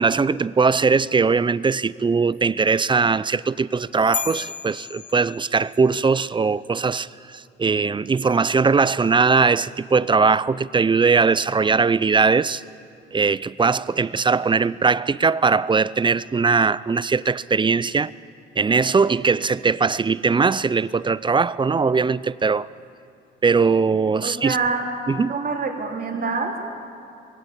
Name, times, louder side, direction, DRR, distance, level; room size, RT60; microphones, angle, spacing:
voice 1, 0.0-12.6 13.1-18.1 18.6-22.7 23.4-24.6 25.1-25.3, right 4 dB, 25° right, 0.5 m, -20 dB
sound 1, 4.1-5.9, left 6 dB, 40° left, 1.2 m, -32 dB
voice 2, 24.2-24.9 25.3-26.6, right 4 dB, 45° right, 3.2 m, -25 dB
22.5 x 16.5 x 8.6 m
cardioid pair, 90°, 20 cm